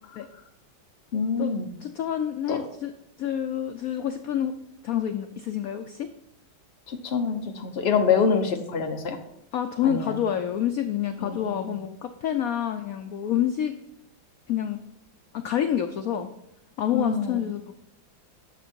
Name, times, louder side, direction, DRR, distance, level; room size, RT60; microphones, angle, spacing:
voice 1, 1.1-1.7 2.5-2.6 6.9-9.2 9.8-10.2 11.2-11.7 16.9-17.4, left 5 dB, 45° left, 4 dB, 0.9 m, -26 dB
voice 2, 1.8-2.9 3.2-4.5 4.8-6.1 9.5-13.7 14.5-14.8 15.3-16.3 16.8-17.7, left 10 dB, 80° left, 8 dB, 0.7 m, -28 dB
10.0 x 6.9 x 4.4 m, 0.79 s
omnidirectional pair, 2.1 m